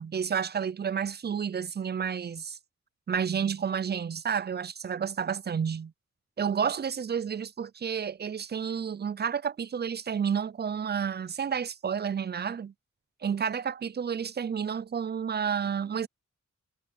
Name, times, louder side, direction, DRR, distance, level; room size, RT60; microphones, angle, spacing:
voice 1, 0.0-2.6 3.1-5.9 6.4-12.7 13.2-16.1, right 7 dB, 35° right, 0.4 m, -30 dB
wide cardioid pair, 70°, 29 cm